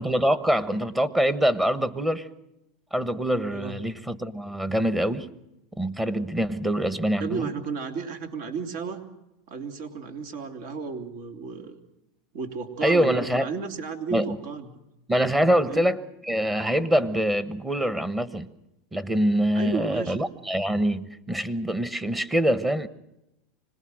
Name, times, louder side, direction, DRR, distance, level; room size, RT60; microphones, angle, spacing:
voice 1, 0.0-2.3 2.9-5.3 5.8-7.5 12.8-13.5 14.1-14.3 15.1-18.5 18.9-22.9, equal, 10° right, 13 dB, 1.2 m, -24 dB
voice 2, 7.2-9.0 9.5-11.7 12.3-14.7 15.7-15.8 19.5-20.2, right 5 dB, 65° right, 5 dB, 3.1 m, -33 dB
25.5 x 19.5 x 6.4 m, 0.87 s
supercardioid pair, 115°, 0 cm